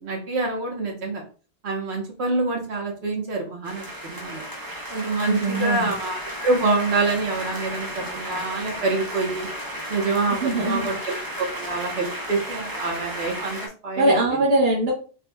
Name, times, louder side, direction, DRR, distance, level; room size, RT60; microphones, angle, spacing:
voice 1, 0.0-1.2 1.6-4.5 4.9-9.5 9.9-13.6 13.8-14.2, right 3 dB, 70° right, 0 dB, 1.3 m, -26 dB
sound 1, 3.6-13.7, equal, 20° right, 0.8 m, -34 dB
voice 2, 5.2-5.9 10.3-10.9 14.0-14.9, right 1 dB, 85° right, -1 dB, 1.3 m, -22 dB
4.1 x 4.1 x 2.2 m, 0.37 s
omnidirectional pair, 1.1 m